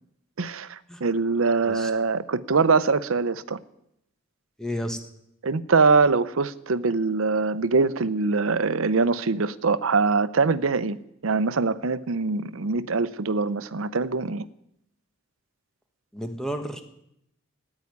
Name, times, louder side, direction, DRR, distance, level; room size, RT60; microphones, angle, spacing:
voice 1, 0.4-3.6 5.4-11.0 11.2-14.5, right 4 dB, 85° right, 0.7 m, -23 dB
voice 2, 4.6-5.0 16.1-16.8, equal, 5° left, 1.3 m, -31 dB
14.0 x 9.7 x 9.6 m
head